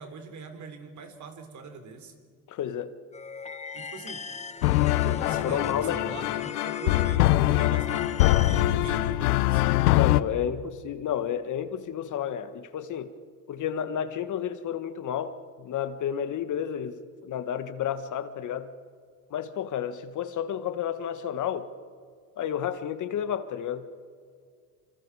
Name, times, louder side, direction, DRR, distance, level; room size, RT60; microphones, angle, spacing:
voice 1, 0.0-2.1 3.7-4.3 5.0-9.6, right 4 dB, 40° right, 7 dB, 3.7 m, -42 dB
voice 2, 2.5-2.9 5.4-6.0 9.9-13.1 13.5-18.7 19.3-21.7 22.4-23.8, left 9 dB, 40° left, 11 dB, 1.4 m, -31 dB
sound 1, 3.1-8.7, left 5 dB, 15° left, 1.0 m, -39 dB
sound 2, 4.6-10.2, left 16 dB, 85° left, 0.9 m, -23 dB
27.5 x 26.0 x 4.8 m, 2.1 s
supercardioid pair, 105°, 44 cm